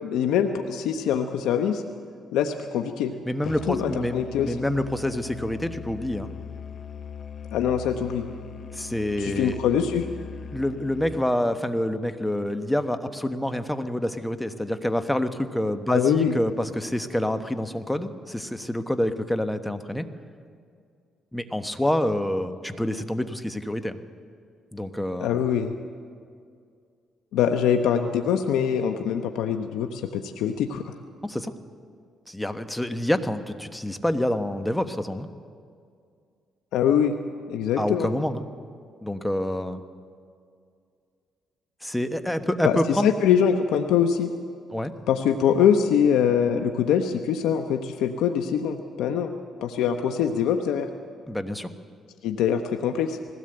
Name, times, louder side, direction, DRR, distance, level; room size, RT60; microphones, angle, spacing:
voice 1, 0.0-1.8 2.3-3.1 3.7-4.6 7.5-8.3 9.2-10.1 15.9-16.3 25.2-25.7 27.3-30.9 36.7-37.1 37.5-38.1 42.6-44.3 45.1-49.3 49.6-50.9 52.2-53.2, left 8 dB, 90° left, 6 dB, 0.9 m, -23 dB
voice 2, 3.2-6.3 8.7-9.6 10.5-20.1 21.3-24.0 24.7-25.4 31.2-31.5 32.3-35.3 37.8-38.4 39.0-39.8 41.8-43.1 44.7-44.9 51.3-51.7, left 1 dB, 5° left, 8 dB, 1.2 m, -27 dB
Musical instrument, 3.4-11.2, left 7 dB, 50° left, 0.7 m, -40 dB
20.5 x 16.5 x 7.9 m, 2.3 s
cardioid pair, 90°, 0 cm